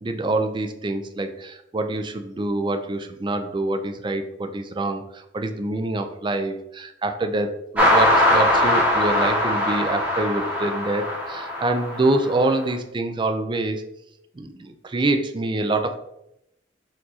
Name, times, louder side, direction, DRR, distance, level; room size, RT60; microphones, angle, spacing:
voice 1, 0.0-13.8 14.4-16.0, right 2 dB, 25° right, 7 dB, 0.4 m, -25 dB
sound 1, 7.8-12.6, left 1 dB, 5° right, 1.0 m, -21 dB
4.5 x 2.5 x 4.1 m, 0.81 s
head